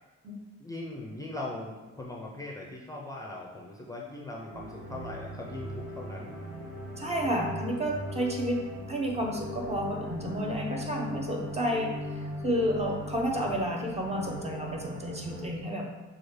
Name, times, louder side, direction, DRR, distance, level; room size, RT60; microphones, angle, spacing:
voice 1, 0.6-6.4 13.4-13.6, left 2 dB, 10° left, -2 dB, 0.6 m, -40 dB
sound 1, 4.5-15.5, left 1 dB, 90° right, 1.3 m, -39 dB
voice 2, 7.0-8.6 8.9-11.9 12.4-15.9, equal, 20° right, 0 dB, 0.8 m, -31 dB
5.8 x 2.4 x 3.2 m, 1.1 s
cardioid pair, 90°, 30 cm